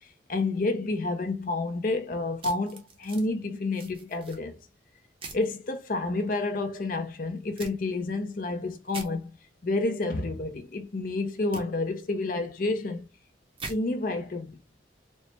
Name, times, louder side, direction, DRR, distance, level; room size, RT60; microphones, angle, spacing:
voice 1, 0.3-4.6 5.3-9.3 9.6-13.1 13.7-14.6, left 2 dB, 50° left, 0.5 m, -29 dB
sound 1, 2.4-3.3 3.7-4.4 5.2-5.5 7.6-7.7 8.9-9.1 11.5-11.6 13.6-13.8, right 3 dB, 30° right, 0.7 m, -41 dB
4.2 x 2.0 x 3.2 m
head